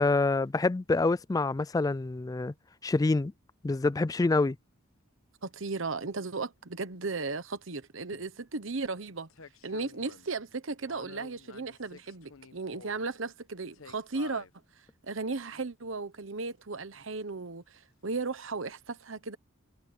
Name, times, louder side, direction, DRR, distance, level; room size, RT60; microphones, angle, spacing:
voice 1, 0.0-2.5 2.8-3.3 3.6-4.6, left 3 dB, 15° left, 0.3 m, -26 dB
voice 2, 5.4-9.3 9.6-14.5 15.0-19.4, right 3 dB, 65° right, 1.1 m, -36 dB
sound 1, 9.3-10.3 10.8-13.1 13.7-14.5 15.3-15.4, left 5 dB, 85° left, 1.1 m, -50 dB
head